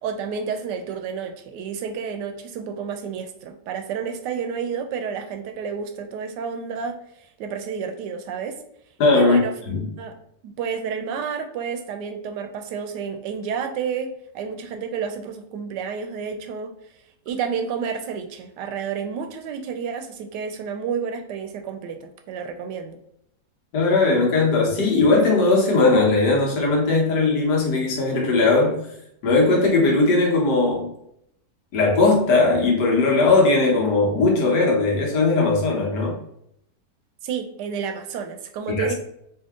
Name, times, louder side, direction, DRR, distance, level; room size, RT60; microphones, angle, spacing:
voice 1, 0.0-7.0 7.4-8.6 9.1-9.5 10.0-10.1 10.4-16.7 17.3-23.0 37.2-38.9, right 6 dB, 80° right, 6 dB, 1.2 m, -30 dB
voice 2, 9.0-9.4 9.7-9.8 23.7-28.8 29.2-30.9 31.7-36.2 38.7-38.9, left 3 dB, 70° left, -2 dB, 1.7 m, -19 dB
4.3 x 2.7 x 3.6 m, 0.75 s
omnidirectional pair, 1.9 m